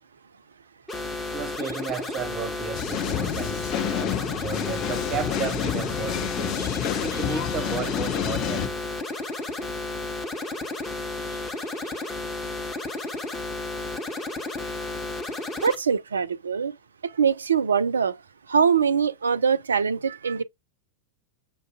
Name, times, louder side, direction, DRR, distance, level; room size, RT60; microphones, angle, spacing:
sound 1, 0.9-15.7, left 2 dB, 15° left, 0.9 m, -33 dB
voice 1, 1.3-6.7 6.9-8.8, right 5 dB, 30° right, 0.6 m, -33 dB
sound 2, 2.7-8.7, left 10 dB, 35° left, 0.4 m, -29 dB
voice 2, 15.6-16.7 17.0-18.2 18.5-20.4, right 6 dB, 70° right, 0.3 m, -23 dB
6.9 x 2.6 x 2.4 m
figure-of-eight pair, 90°, 0 cm